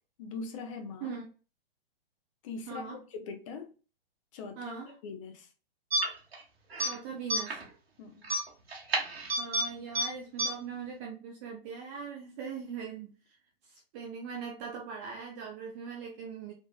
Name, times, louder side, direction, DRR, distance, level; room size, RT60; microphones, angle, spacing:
voice 1, 0.2-1.2 2.4-3.7 4.3-4.7 5.0-5.5 8.0-8.3, left 4 dB, 35° left, 0.6 m, -41 dB
voice 2, 2.7-3.0 4.6-4.9 6.8-7.6 9.4-13.4 13.6-16.5, right 6 dB, 15° right, 0.3 m, -41 dB
sound 1, 5.9-6.4 6.7-6.9 7.3-7.6 8.2-9.6 9.9-10.0 10.4-10.5, right 2 dB, 80° right, 1.3 m, -29 dB
3.6 x 2.5 x 2.2 m
figure-of-eight pair, 125°, 30 cm